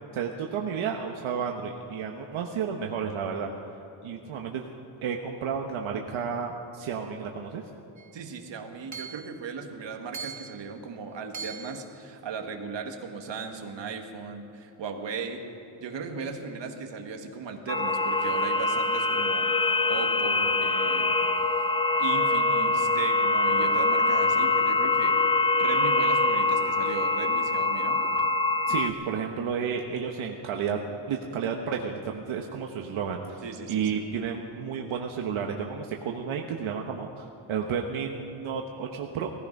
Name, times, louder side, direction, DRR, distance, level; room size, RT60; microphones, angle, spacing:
voice 1, 0.1-3.5 4.0-4.6 5.0-7.6 28.7-30.8 31.1-33.4 33.7-39.3, right 6 dB, 85° right, 2 dB, 1.2 m, -31 dB
Hammer / Chink clink, 8.0-8.1 8.9-9.3 10.1-10.6 11.3-11.8, right 6 dB, 35° right, 1.3 m, -39 dB
voice 2, 8.1-15.4 15.8-19.5 19.9-21.2 22.0-25.2 25.6-28.1 33.4-34.0, right 5 dB, 65° right, 4 dB, 1.7 m, -37 dB
sound 1, 17.7-28.9, left 2 dB, 10° left, 0.5 m, -24 dB
19.0 x 14.5 x 5.3 m, 3.0 s
wide cardioid pair, 135°, 47 cm